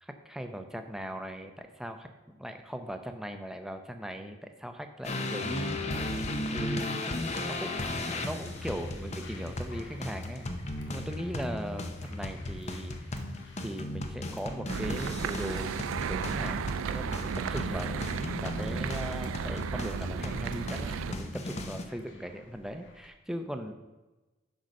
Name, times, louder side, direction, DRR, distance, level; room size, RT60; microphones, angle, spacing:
voice 1, 0.0-6.0 6.5-7.0 7.5-10.5 10.9-13.0 13.6-15.7 16.0-16.6 16.9-18.0 18.4-23.7, equal, 5° right, 6 dB, 0.6 m, -39 dB
sound 1, 5.0-21.8, left 2 dB, 35° left, 0.7 m, -36 dB
sound 2, 7.4-23.1, left 2 dB, 65° left, 1.2 m, -54 dB
sound 3, 14.7-21.1, right 6 dB, 90° right, 0.3 m, -34 dB
10.5 x 4.0 x 6.4 m, 1.1 s
head